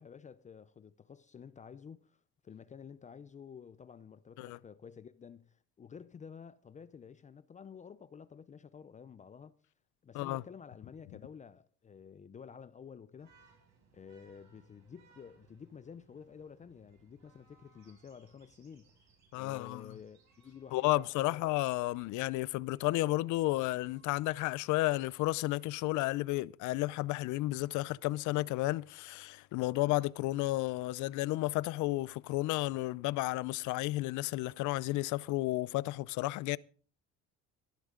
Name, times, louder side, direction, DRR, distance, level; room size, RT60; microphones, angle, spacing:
voice 1, 0.0-2.2 2.4-9.5 10.0-13.3 13.9-18.9 19.3-21.5, left 7 dB, 25° left, 0.5 m, -51 dB
sound 1, 13.2-25.8, right 5 dB, 60° right, 6.6 m, -67 dB
voice 2, 19.3-20.0 20.7-36.6, left 18 dB, 70° left, 0.6 m, -32 dB
17.5 x 11.5 x 3.8 m
cardioid pair, 135°, 31 cm